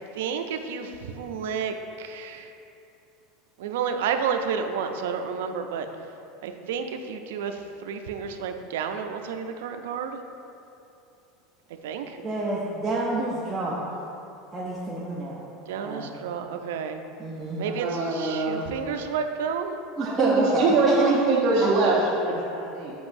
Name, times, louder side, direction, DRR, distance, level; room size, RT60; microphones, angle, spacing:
voice 1, 0.2-2.5 3.6-5.9 6.4-10.2 11.8-12.2 15.7-17.0 17.6-17.9 18.1-19.8, right 6 dB, 90° right, 6 dB, 0.4 m, -31 dB
voice 2, 12.2-14.0 14.5-15.4 15.8-16.2 17.2-17.6 20.0-21.0, right 1 dB, 10° right, -7 dB, 0.5 m, -29 dB
voice 3, 17.7-18.6 20.0-22.9, right 3 dB, 40° right, -8 dB, 0.8 m, -23 dB
7.8 x 5.3 x 2.6 m, 2.7 s
supercardioid pair, 165°, 0 cm